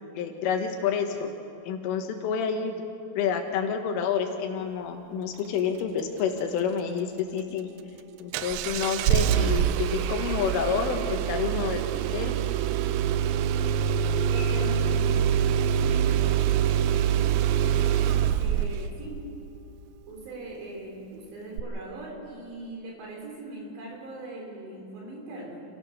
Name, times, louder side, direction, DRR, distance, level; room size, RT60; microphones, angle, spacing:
voice 1, 0.2-1.3 1.7-2.7 3.2-7.7 8.2-12.4, left 7 dB, 85° left, 4 dB, 4.1 m, -29 dB
Engine starting, 8.3-18.9 21.6-21.7, right 9 dB, 80° right, 2.6 m, -25 dB
voice 2, 14.3-15.1 15.7-17.3 17.9-19.2 20.1-25.6, right 2 dB, 65° right, -1 dB, 5.8 m, -41 dB
27.5 x 15.5 x 6.6 m, 2.6 s
omnidirectional pair, 5.5 m